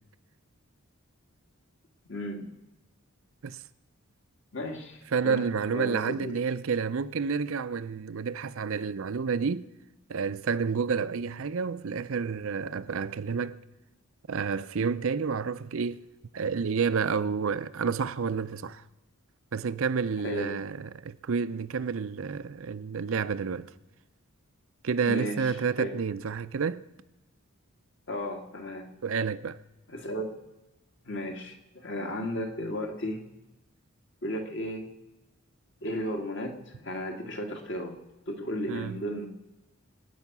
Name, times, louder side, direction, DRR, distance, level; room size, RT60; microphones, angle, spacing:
voice 1, 2.1-2.5 4.5-5.5 5.7-6.4 20.2-20.6 25.1-25.9 28.1-28.9 29.9-30.3 31.0-33.2 34.2-34.9 35.8-37.9 38.3-39.3, equal, 55° left, 2.0 m, -34 dB
voice 2, 5.1-9.7 10.1-13.6 14.3-16.0 16.3-18.8 19.5-23.7 24.8-26.8 29.0-29.6 38.7-39.0, right 5 dB, 65° right, 0.5 m, -29 dB
25.0 x 9.3 x 6.0 m
head